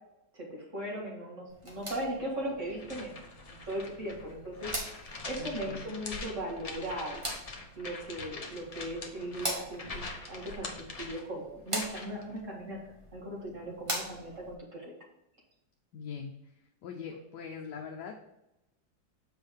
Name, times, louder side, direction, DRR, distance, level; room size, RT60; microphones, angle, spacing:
voice 1, 0.3-3.2 3.5-7.2 7.8-12.8 13.1-14.9, right 1 dB, 40° right, -2 dB, 2.0 m, -38 dB
sound 1, 1.5-14.5, equal, 20° right, 1.2 m, -42 dB
sound 2, 2.7-12.2, left 3 dB, 30° left, 0.6 m, -43 dB
voice 2, 5.4-5.8 15.9-16.3 16.8-18.1, left 6 dB, 65° left, 1 dB, 1.3 m, -41 dB
7.6 x 5.3 x 3.6 m, 0.90 s
omnidirectional pair, 2.1 m